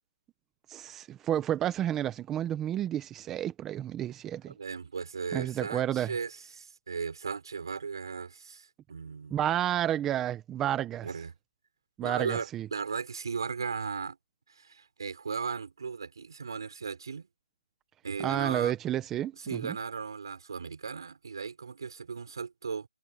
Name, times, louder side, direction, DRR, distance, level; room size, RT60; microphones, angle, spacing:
voice 1, 0.7-4.5 5.3-6.1 9.3-11.1 12.0-12.7 18.2-19.8, right 11 dB, 10° right, 0.9 m, -31 dB
voice 2, 4.6-9.4 11.0-11.3 12.0-14.2 14.6-17.3 18.0-18.7 19.4-22.9, right 5 dB, 50° right, 6.3 m, -36 dB
hypercardioid pair, 170°, 3 cm